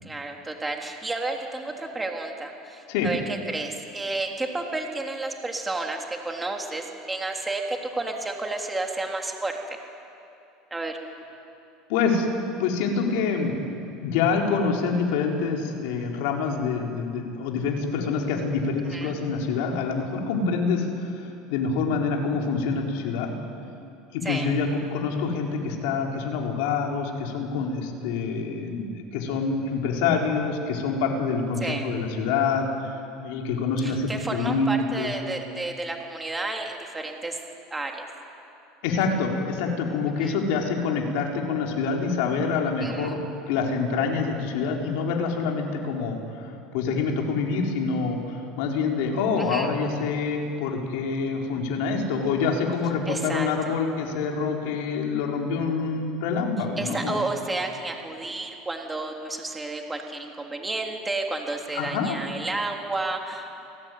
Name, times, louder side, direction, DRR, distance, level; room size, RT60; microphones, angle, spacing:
voice 1, 0.0-9.5 10.7-11.0 18.9-19.1 24.2-24.5 31.6-31.9 33.8-37.4 37.7-38.1 40.2-40.3 42.8-43.1 49.4-49.7 53.1-53.8 56.8-63.5, right 2 dB, 10° right, 2 dB, 3.2 m, -31 dB
voice 2, 11.9-12.3 12.6-13.6 14.0-23.3 24.1-34.7 35.0-35.1 38.8-57.2 61.7-62.2, left 5 dB, 75° left, 1 dB, 4.5 m, -26 dB
29.0 x 19.0 x 9.6 m, 2.7 s
supercardioid pair, 125°, 0 cm